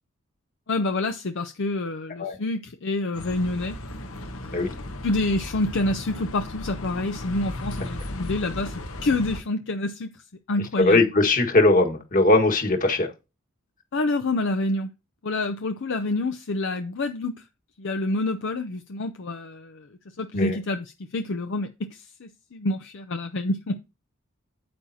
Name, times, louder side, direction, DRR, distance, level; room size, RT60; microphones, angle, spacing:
voice 1, 0.7-3.7 4.4-4.6 5.0-8.7 9.0-10.1 10.5-11.0 13.9-14.9 15.2-17.4 17.8-19.9 20.2-23.8, left 2 dB, 60° left, 0.6 m, -27 dB
Bus, 3.1-9.4, left 1 dB, 85° left, 1.3 m, -36 dB
voice 2, 10.8-13.1 20.3-20.6, left 2 dB, 40° left, 1.6 m, -20 dB
8.6 x 8.6 x 2.8 m
head